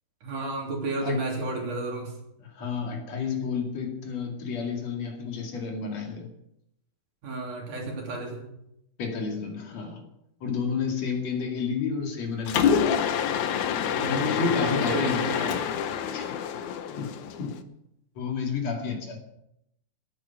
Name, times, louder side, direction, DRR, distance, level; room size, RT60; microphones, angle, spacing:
voice 1, 0.2-2.1 7.2-8.5 14.0-15.7, right 2 dB, 55° right, -1 dB, 4.6 m, -32 dB
voice 2, 2.4-6.3 9.0-10.0 10.4-13.2 14.1-15.2 16.1-16.4 17.0-17.1 17.4-17.5 18.2-19.2, left 5 dB, 50° left, 2 dB, 3.1 m, -31 dB
Mechanisms, 12.5-17.6, left 8 dB, 75° left, 1.8 m, -27 dB
18.5 x 9.0 x 6.0 m, 0.80 s
omnidirectional pair, 4.5 m